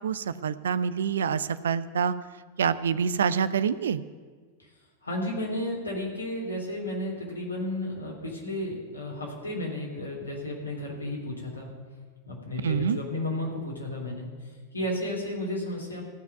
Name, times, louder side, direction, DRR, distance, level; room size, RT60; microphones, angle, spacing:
voice 1, 0.0-2.1 2.6-4.0 12.6-13.0, right 7 dB, 65° right, 15 dB, 0.5 m, -26 dB
voice 2, 5.0-11.7 12.3-14.3 14.7-16.0, left 1 dB, 80° left, -2 dB, 3.4 m, -33 dB
15.0 x 5.8 x 9.2 m, 1.5 s
figure-of-eight pair, 90°, 0 cm